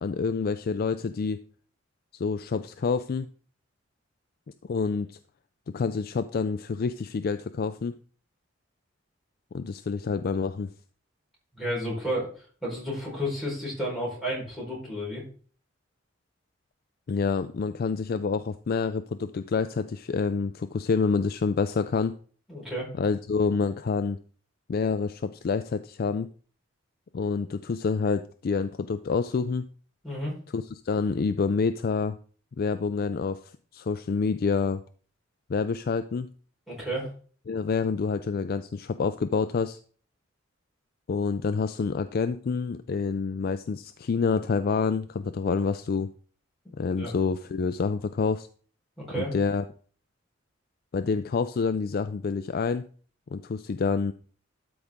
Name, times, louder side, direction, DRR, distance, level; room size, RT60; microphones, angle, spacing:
voice 1, 0.0-1.4 2.1-3.3 4.6-5.2 5.7-8.0 9.5-10.7 17.1-22.1 23.0-24.2 24.7-26.3 27.1-29.7 30.5-32.2 32.6-34.8 35.5-36.3 37.5-39.8 41.1-46.1 46.8-48.5 49.1-49.6 50.9-52.9 53.3-54.1, left 5 dB, 50° left, 11 dB, 0.4 m, -27 dB
voice 2, 11.5-15.2 22.5-22.9 30.0-30.3 36.7-37.1 46.9-47.1 49.0-49.3, equal, ahead, -6 dB, 4.4 m, -32 dB
12.5 x 5.2 x 3.6 m, 0.43 s
head